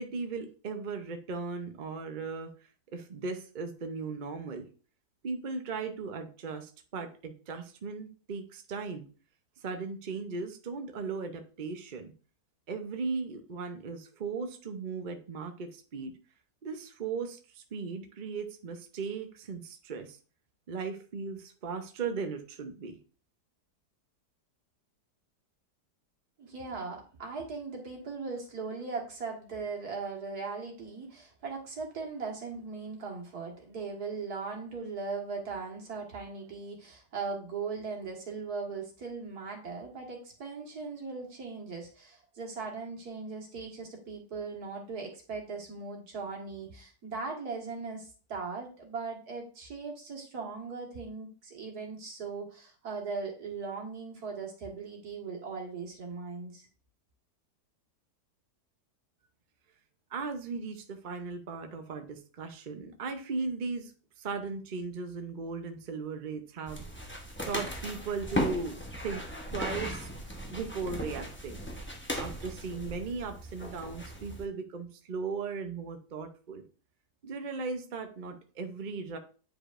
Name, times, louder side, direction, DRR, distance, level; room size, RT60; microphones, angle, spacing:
voice 1, 0.0-2.5 2.9-4.7 5.2-9.1 9.6-12.1 12.7-16.1 16.6-20.2 20.7-23.0 60.1-63.9 64.2-66.8 67.1-67.2 67.5-69.3 69.5-70.1 70.5-71.6 72.2-76.6 77.2-79.2, right 4 dB, 45° right, 6 dB, 0.6 m, -37 dB
voice 2, 26.4-56.7, right 4 dB, 65° right, 1 dB, 2.1 m, -39 dB
sound 1, 66.7-74.4, equal, 10° left, 0.6 m, -37 dB
9.3 x 5.0 x 2.5 m, 0.39 s
omnidirectional pair, 1.8 m